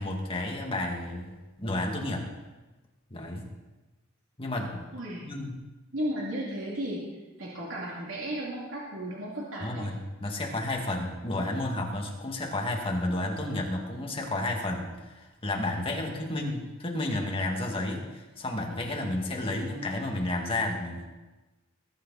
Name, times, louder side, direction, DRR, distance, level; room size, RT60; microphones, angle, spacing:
voice 1, 0.0-1.3 1.6-2.3 3.1-3.5 4.4-4.9 5.2-5.6 9.6-21.1, left 2 dB, 25° left, 0 dB, 2.2 m, -31 dB
voice 2, 4.9-5.3 5.9-9.9, right 1 dB, 75° right, -5 dB, 2.7 m, -35 dB
21.0 x 9.8 x 4.2 m, 1.2 s
head